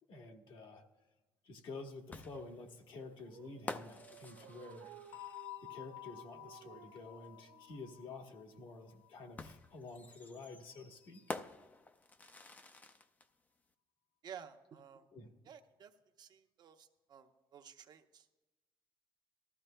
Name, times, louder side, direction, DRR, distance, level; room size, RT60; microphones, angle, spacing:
voice 1, 0.1-0.8 1.4-4.9 5.6-11.2 15.1-15.3, left 3 dB, 60° left, 2 dB, 1.3 m, -50 dB
sound 1, 2.1-5.8 7.2-7.3 9.4-13.3, left 3 dB, 20° left, 0.5 m, -49 dB
Dog, 3.0-8.7, right 11 dB, 85° right, 0.5 m, -58 dB
sound 2, 5.1-9.8, left 19 dB, 85° left, 0.4 m, -52 dB
voice 2, 14.2-15.0 15.5-15.9 16.2-18.3, right 8 dB, 50° right, 6 dB, 0.8 m, -54 dB
18.5 x 13.5 x 2.2 m, 1.1 s
cardioid pair, 120°, 9 cm